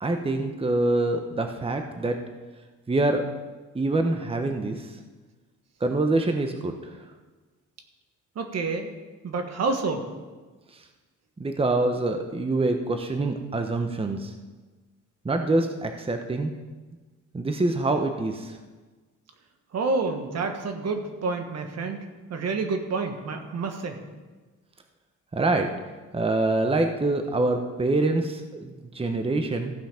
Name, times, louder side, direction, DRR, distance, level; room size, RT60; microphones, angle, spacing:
voice 1, 0.0-2.2 2.9-3.2 3.7-4.9 5.8-6.7 10.7-10.8 11.4-14.3 15.2-16.5 17.3-18.6 25.3-25.7 26.1-29.7, right 2 dB, 20° right, 5 dB, 0.9 m, -25 dB
voice 2, 8.3-8.9 9.2-10.0 19.7-22.0 22.3-24.0, right 3 dB, 60° right, 5 dB, 1.4 m, -28 dB
15.0 x 5.7 x 5.7 m, 1.3 s
cardioid pair, 90°, 30 cm